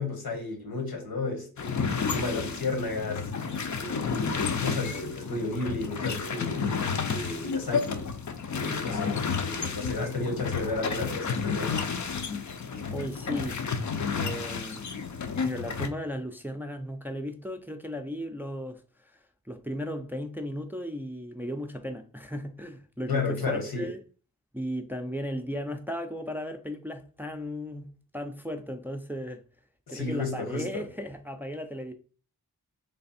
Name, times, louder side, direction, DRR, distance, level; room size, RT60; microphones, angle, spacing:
voice 1, 0.0-3.2 3.5-6.7 7.1-8.1 8.5-9.2 9.4-11.7 23.1-23.9 29.9-30.9, left 3 dB, 85° left, 1.4 m, -33 dB
sound 1, 1.6-15.9, left 5 dB, 55° left, 0.6 m, -31 dB
voice 2, 12.9-13.6 14.2-14.9 15.4-19.2 19.5-24.0 24.5-27.9 28.1-29.4 29.9-31.9, equal, 5° right, 0.4 m, -35 dB
3.4 x 3.3 x 4.1 m
wide cardioid pair, 125°, 35 cm